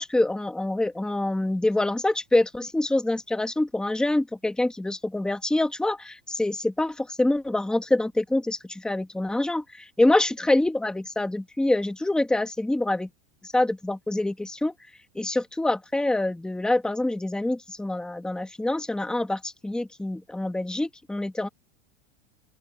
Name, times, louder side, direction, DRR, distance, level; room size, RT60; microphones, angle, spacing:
voice 1, 0.0-13.1 13.4-14.7 15.1-21.5, left 2 dB, ahead, 1.2 m, -25 dB
open air
supercardioid pair, 165°, 36 cm